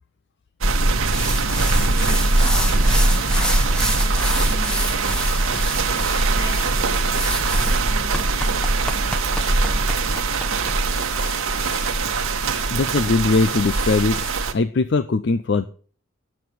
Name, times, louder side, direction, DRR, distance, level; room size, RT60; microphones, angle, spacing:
sound 1, 0.6-14.5, right 3 dB, 85° right, 1.3 m, -21 dB
sound 2, 1.1-14.3, equal, 5° left, 1.0 m, -30 dB
voice 1, 1.7-2.6 3.0-5.9 6.3-11.2, equal, 30° left, 1 dB, 5.4 m, -40 dB
voice 2, 12.7-14.2 14.5-15.6, left 3 dB, 55° left, 14 dB, 0.5 m, -20 dB
9.3 x 7.7 x 6.8 m, 0.43 s
head